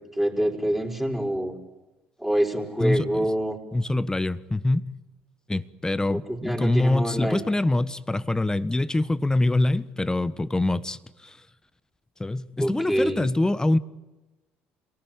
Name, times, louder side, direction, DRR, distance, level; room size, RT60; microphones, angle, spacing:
voice 1, 0.1-1.5 2.2-3.6 6.1-7.4 12.6-13.2, right 1 dB, 5° right, 5.2 m, -26 dB
voice 2, 2.8-3.3 3.7-4.9 5.5-11.4 12.2-13.8, left 2 dB, 15° left, 1.3 m, -24 dB
28.0 x 19.0 x 9.0 m
hypercardioid pair, 65°, 5 cm